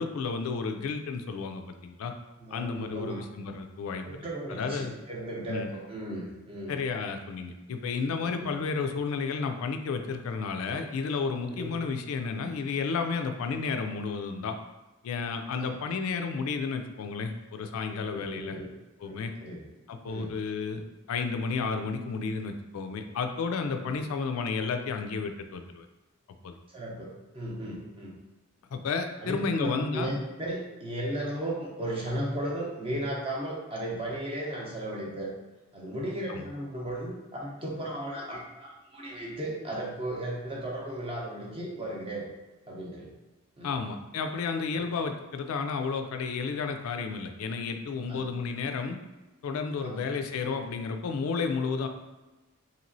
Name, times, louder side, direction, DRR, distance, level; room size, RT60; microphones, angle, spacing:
voice 1, 0.0-2.1 2.5-4.2 4.5-4.9 5.5-5.7 6.7-14.6 15.0-18.6 19.0-19.3 19.9-20.8 21.1-25.9 26.4-26.5 28.7-30.1 36.3-36.4 43.6-49.0 49.4-51.9, left 5 dB, 80° left, 6 dB, 0.3 m, -32 dB
voice 2, 2.4-3.2 4.0-6.7 8.2-8.5 11.5-11.7 15.6-15.8 18.0-18.7 19.0-19.6 20.1-20.3 23.8-23.9 26.7-28.1 29.2-35.3 35.7-42.2 42.7-43.1 43.6-43.7 44.7-44.9 48.1-48.2 49.8-50.0, right 1 dB, 25° right, -3 dB, 0.6 m, -35 dB
3.0 x 2.8 x 2.6 m, 1.1 s
head